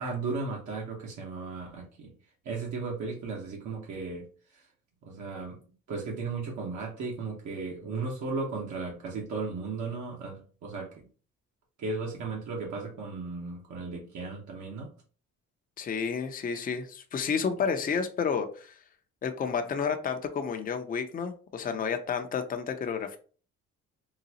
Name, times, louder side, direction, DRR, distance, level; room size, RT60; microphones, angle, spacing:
voice 1, 0.0-2.1 2.4-4.3 4.5-4.6 5.1-5.6 5.9-11.0 11.8-14.9, right 4 dB, 70° right, -2 dB, 1.0 m, -35 dB
voice 2, 15.8-18.8 19.2-23.2, left 6 dB, 30° left, 7 dB, 0.5 m, -31 dB
3.9 x 2.3 x 2.8 m, 0.40 s
cardioid pair, 90°, 30 cm